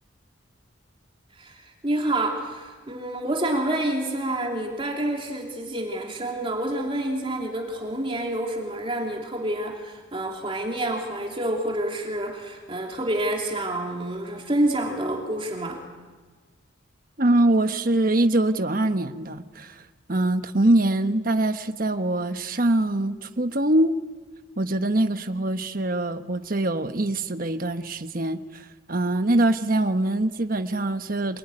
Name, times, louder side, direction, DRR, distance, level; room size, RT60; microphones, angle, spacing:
voice 1, 1.4-15.8, right 1 dB, 25° right, 3.2 m, -28 dB
voice 2, 17.2-19.8 20.1-24.0 24.6-31.4, right 1 dB, 45° right, 1.1 m, -23 dB
27.5 x 21.5 x 9.9 m
head